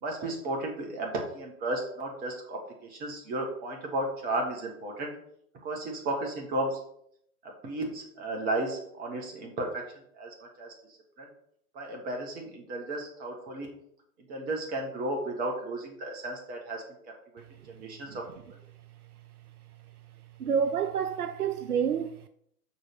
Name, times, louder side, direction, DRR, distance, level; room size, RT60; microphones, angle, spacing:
voice 1, 0.0-2.6 2.9-5.1 5.6-6.8 7.6-9.8 10.2-10.3 10.6-10.7 11.2-11.3 11.7-13.7 14.3-16.8 17.7-18.1, right 2 dB, 20° right, 1.5 m, -33 dB
voice 2, 20.4-22.3, right 7 dB, 70° right, 0.6 m, -28 dB
6.8 x 4.6 x 4.8 m
figure-of-eight pair, 120°, 47 cm